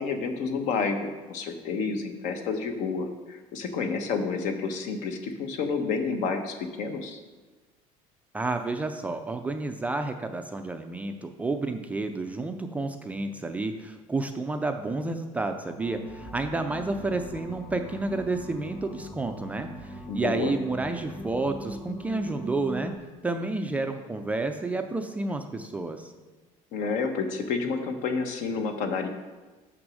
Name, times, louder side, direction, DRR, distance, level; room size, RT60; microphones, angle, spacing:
voice 1, 0.0-7.2 20.1-20.5 26.7-29.1, left 4 dB, 65° left, 6 dB, 1.0 m, -30 dB
voice 2, 8.3-22.9 23.2-26.1, right 3 dB, 10° right, 6 dB, 0.3 m, -30 dB
sound 1, 15.8-22.9, equal, 40° left, 1.9 m, -41 dB
6.1 x 6.1 x 6.2 m, 1.3 s
cardioid pair, 175°, 14 cm